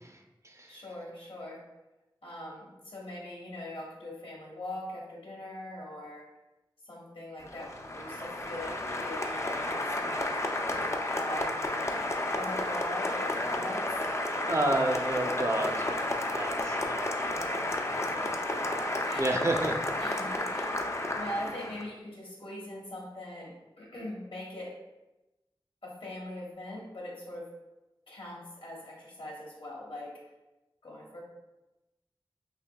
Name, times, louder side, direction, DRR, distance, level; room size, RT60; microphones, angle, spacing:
voice 1, 0.0-0.8 14.5-17.2 17.9-18.6 19.2-19.8, right 1 dB, 35° right, 3 dB, 0.5 m, -31 dB
voice 2, 0.7-1.6 2.2-6.3 6.8-9.6 9.9-10.3 10.6-13.9 17.3-19.6 20.0-20.9 21.1-24.7 25.8-27.5 28.1-30.1 30.8-31.2, left 1 dB, 80° left, -3 dB, 1.2 m, -42 dB
Applause, 7.4-21.9, left 1 dB, 30° left, 0.5 m, -32 dB
5.6 x 3.1 x 2.3 m, 1.0 s
wide cardioid pair, 50°, 9 cm